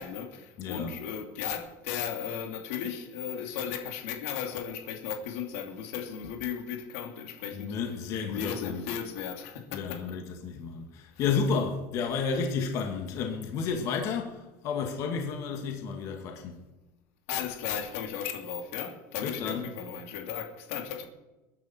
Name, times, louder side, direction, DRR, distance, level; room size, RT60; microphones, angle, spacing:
voice 1, 0.0-7.8 8.3-10.2 11.1-11.2 17.3-21.0, left 8 dB, 80° left, 2.7 m, -36 dB
voice 2, 0.6-1.0 7.5-8.9 9.7-16.6 19.2-19.7, left 5 dB, 50° left, 2.4 m, -32 dB
21.5 x 11.0 x 4.6 m
cardioid pair, 145°, 7 cm